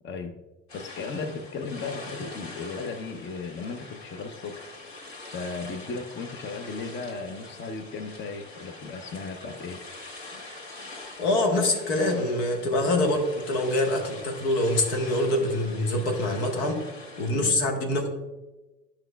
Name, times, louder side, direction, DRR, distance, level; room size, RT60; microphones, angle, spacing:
voice 1, 0.0-0.4 0.7-4.7 5.3-9.8 17.3-17.6, left 4 dB, 35° left, 6 dB, 0.8 m, -36 dB
sound 1, 0.7-17.3, left 2 dB, 55° left, 2.1 m, -44 dB
voice 2, 11.2-16.8 17.2-18.1, left 1 dB, 75° left, 3 dB, 1.4 m, -25 dB
11.0 x 5.7 x 2.3 m, 1.1 s
hypercardioid pair, 75°, 33 cm